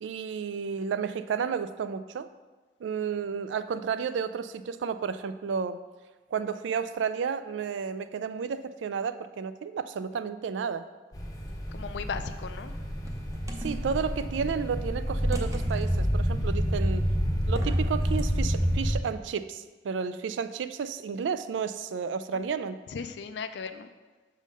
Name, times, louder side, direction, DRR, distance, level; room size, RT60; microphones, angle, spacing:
voice 1, 0.0-2.3 2.8-5.8 6.3-10.9 13.6-17.0 17.5-22.8, right 6 dB, 90° right, 13 dB, 0.3 m, -32 dB
sound 1, 11.1-19.0, equal, 20° left, 0.7 m, -28 dB
sound 2, 11.3-11.9 12.6-14.1 15.3-16.1 17.4-18.3, right 1 dB, 20° right, 0.5 m, -43 dB
voice 2, 11.7-12.7 22.3-22.4 22.9-23.9, left 5 dB, 70° left, 10 dB, 0.4 m, -36 dB
6.2 x 3.7 x 5.4 m, 1.3 s
head